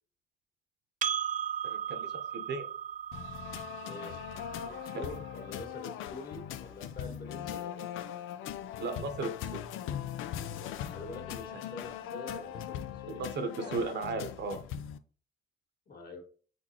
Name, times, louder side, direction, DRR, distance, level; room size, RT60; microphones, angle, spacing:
Percussion, 1.0-5.8, right 8 dB, 40° right, 0.4 m, -37 dB
voice 1, 1.6-2.6 4.9-5.0 8.8-9.6 11.5-11.6 13.1-14.6, right 3 dB, 60° right, 7 dB, 1.0 m, -36 dB
sound 1, 3.1-15.0, left 10 dB, 90° left, 0.5 m, -40 dB
voice 2, 3.8-4.3 4.6-7.9 10.4-13.8 15.9-16.2, left 2 dB, 50° left, 3 dB, 1.8 m, -46 dB
4.4 x 4.1 x 2.9 m, 0.41 s
cardioid pair, 90°, 20 cm